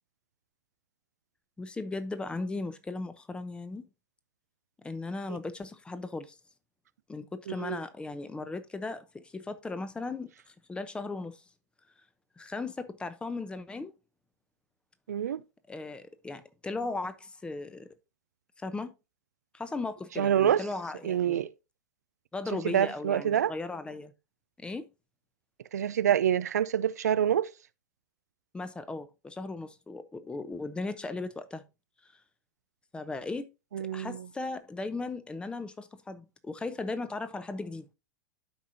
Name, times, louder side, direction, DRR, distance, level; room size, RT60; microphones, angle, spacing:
voice 1, 1.6-3.8 4.8-6.4 7.1-11.4 12.4-13.9 15.7-17.9 18.6-18.9 19.5-21.4 22.3-24.1 24.6-24.9 28.5-31.6 32.1-32.2 32.9-33.4 33.8-37.9, left 3 dB, 10° left, 0.8 m, -37 dB
voice 2, 7.5-7.8 15.1-15.4 20.2-20.6 21.0-21.5 22.7-23.5 25.7-27.5 33.7-34.3, right 10 dB, 70° right, 0.4 m, -26 dB
12.0 x 5.0 x 2.7 m
figure-of-eight pair, 95°, 9 cm